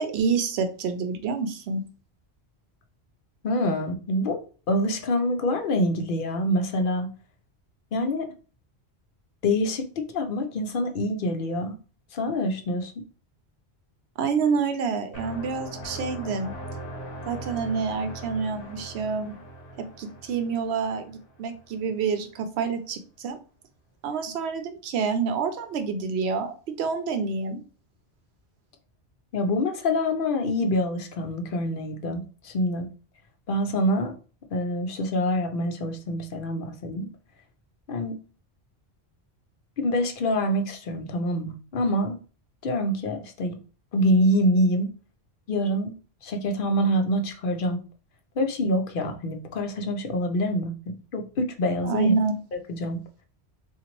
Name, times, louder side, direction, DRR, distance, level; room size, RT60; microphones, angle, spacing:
voice 1, 0.0-1.8 14.2-16.5 17.3-19.3 19.8-23.4 24.0-27.6 51.8-52.3, right 5 dB, 75° right, 8 dB, 0.9 m, -27 dB
voice 2, 3.4-4.4 4.7-7.1 7.9-8.3 9.4-11.8 12.1-13.0 29.3-32.9 33.5-34.1 34.5-37.1 37.9-38.2 39.8-42.2 42.6-43.6 43.9-44.9 45.5-45.9 46.2-47.8 48.4-52.1 52.5-53.0, equal, 60° left, 6 dB, 0.7 m, -26 dB
sound 1, 15.1-21.9, right 1 dB, 40° left, 1.0 m, -40 dB
3.9 x 2.5 x 2.9 m, 0.37 s
omnidirectional pair, 1.1 m